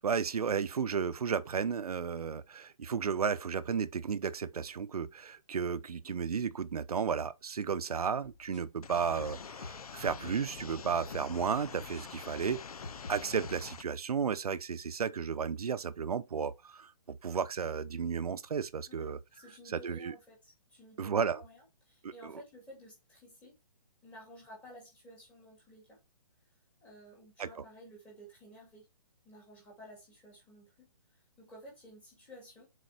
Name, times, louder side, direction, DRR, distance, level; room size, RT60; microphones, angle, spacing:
voice 1, 0.0-12.6 13.1-19.2 19.7-20.1 21.0-21.4 22.0-22.3 27.4-27.5, right 6 dB, 70° right, 0.8 m, -33 dB
sound 1, 8.2-8.8 9.2-10.6 11.1-11.3 12.0-12.1 12.8-13.7, left 3 dB, 50° left, 2.4 m, -47 dB
sound 2, 8.8-13.8, left 6 dB, 70° left, 0.9 m, -46 dB
voice 2, 18.9-23.6 24.0-26.0 26.8-28.9 29.2-32.7, equal, 5° left, 2.2 m, -54 dB
6.7 x 4.6 x 4.5 m
hypercardioid pair, 180°, 20 cm